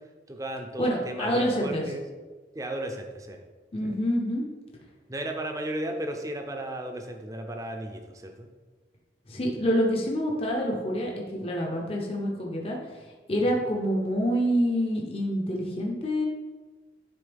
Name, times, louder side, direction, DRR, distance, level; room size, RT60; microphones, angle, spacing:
voice 1, 0.3-2.0 2.5-3.4 5.1-8.5 13.6-13.7, right 1 dB, 20° right, 4 dB, 0.6 m, -35 dB
voice 2, 0.8-1.8 3.7-4.5 9.3-12.8 13.3-16.3, equal, 30° left, -1 dB, 0.8 m, -27 dB
10.0 x 3.8 x 3.5 m, 1.3 s
head